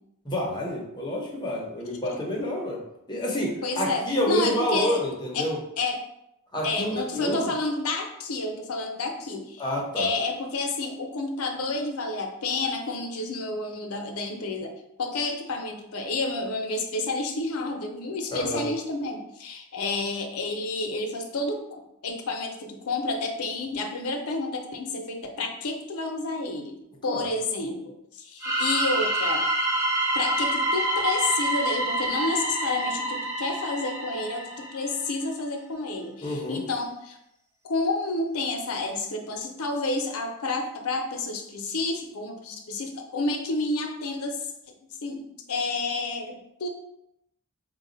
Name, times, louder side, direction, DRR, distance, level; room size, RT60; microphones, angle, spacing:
voice 1, 0.2-2.8 3.1-5.6 6.5-7.5 9.6-10.1 18.3-18.6 27.1-27.3 36.2-36.6, left 1 dB, 20° left, -2 dB, 0.9 m, -28 dB
voice 2, 3.6-5.0 5.3-5.5 5.8-6.0 6.6-9.6 10.0-26.8 27.0-29.4 30.1-37.2 37.6-44.4 45.0-46.7, left 3 dB, 80° left, 4 dB, 0.7 m, -30 dB
sound 1, 28.4-35.1, right 1 dB, 10° right, 0.7 m, -27 dB
4.0 x 2.3 x 3.9 m, 0.82 s
head